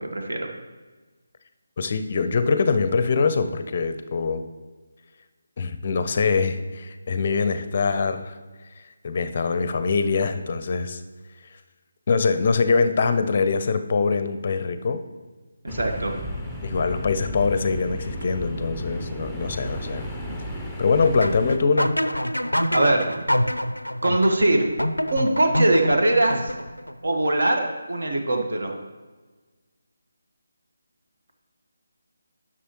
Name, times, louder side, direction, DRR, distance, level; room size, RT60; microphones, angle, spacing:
voice 1, 0.0-0.5 15.6-16.1 22.7-23.1 24.0-24.7 25.1-26.5 27.0-28.7, right 1 dB, 55° right, 3 dB, 1.3 m, -22 dB
voice 2, 1.8-4.4 5.6-8.3 9.0-11.0 12.1-15.0 16.6-20.0 20.8-21.9, left 4 dB, 35° left, 10 dB, 0.5 m, -23 dB
sound 1, 15.7-21.6, equal, ahead, 0.7 m, -33 dB
sound 2, 21.0-26.9, equal, 85° left, 0.4 m, -26 dB
11.0 x 6.2 x 3.0 m, 1.3 s
figure-of-eight pair, 155°, 0 cm